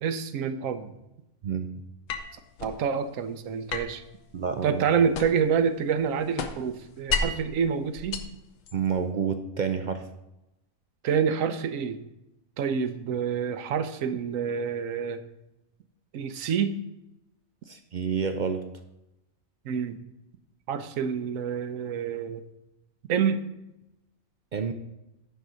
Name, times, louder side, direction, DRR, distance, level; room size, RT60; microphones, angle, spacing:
voice 1, 0.0-0.9 2.6-4.0 4.6-8.2 11.0-12.0 12.6-15.2 16.1-16.8 19.6-20.0 20.7-22.4 23.1-23.4, right 7 dB, 75° right, 11 dB, 1.1 m, -27 dB
sound 1, 2.1-2.8 3.7-5.6 5.9-7.5 8.0-9.0, left 4 dB, 70° left, 1.1 m, -33 dB
voice 2, 4.3-4.8 8.7-10.0 17.7-18.6 24.5-24.7, right 6 dB, 55° right, 7 dB, 0.5 m, -29 dB
10.0 x 4.1 x 6.2 m, 0.91 s
omnidirectional pair, 1.4 m